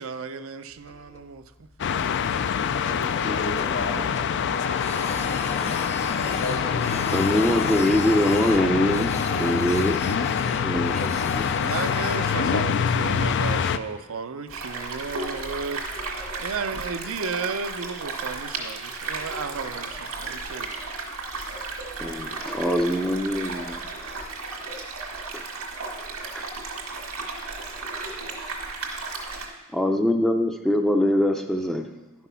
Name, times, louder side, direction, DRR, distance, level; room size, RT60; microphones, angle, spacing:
voice 1, 0.0-1.7 11.5-15.8 16.4-20.7, right 5 dB, 70° right, 10 dB, 0.5 m, -33 dB
Printer, 0.7-1.4 1.7-1.9 2.3-3.9 4.1-12.3, left 3 dB, 30° left, 0.9 m, -35 dB
sound 1, 1.8-13.8, left 7 dB, 55° left, 0.4 m, -25 dB
voice 2, 2.9-5.5 6.2-7.5, left 2 dB, 80° left, -3 dB, 3.5 m, -35 dB
voice 3, 7.0-10.0 10.6-11.5 22.0-23.8 25.3-25.4 26.3-26.4 29.7-31.9, left 1 dB, ahead, 3 dB, 0.5 m, -23 dB
sound 2, 14.5-29.5, right 3 dB, 85° right, 1.9 m, -34 dB
11.0 x 6.1 x 5.6 m, 1.1 s
head